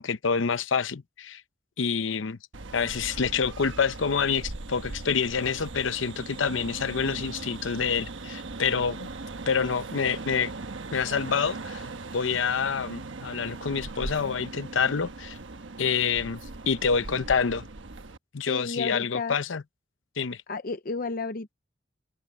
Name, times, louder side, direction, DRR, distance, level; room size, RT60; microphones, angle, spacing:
voice 1, 0.0-1.4 1.8-2.4 2.7-9.1 9.5-10.5 10.9-11.8 12.1-15.4 15.8-16.4 16.7-17.7 18.3-19.6 20.2-20.4, left 6 dB, 85° left, 0.7 m, -27 dB
sound 1, 2.5-18.2, right 3 dB, 80° right, 1.2 m, -39 dB
voice 2, 18.5-19.3 20.5-21.5, left 4 dB, 45° left, 0.7 m, -32 dB
open air
head